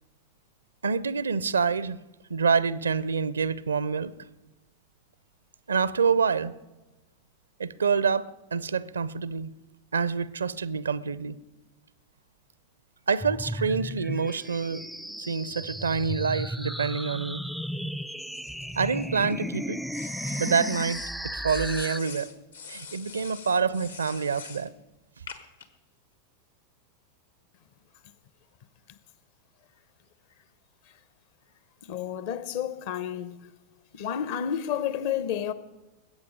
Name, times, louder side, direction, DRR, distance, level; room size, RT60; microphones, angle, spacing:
voice 1, 0.8-2.0 2.3-4.1 5.7-6.5 7.6-9.5 9.9-11.4 13.1-14.8 15.2-17.4 18.8-19.8 20.4-21.0 21.3-22.3 22.7-24.7, right 5 dB, 70° right, 0.5 m, -27 dB
sound 1, 13.2-22.0, equal, ahead, 0.3 m, -35 dB
sound 2, 18.3-19.3 19.9-21.1 21.5-24.7 25.3-25.7, left 6 dB, 70° left, 1.3 m, -43 dB
voice 2, 31.8-33.5 33.9-35.5, left 9 dB, 50° left, 0.8 m, -31 dB
21.0 x 8.5 x 5.0 m
figure-of-eight pair, 90°, 0 cm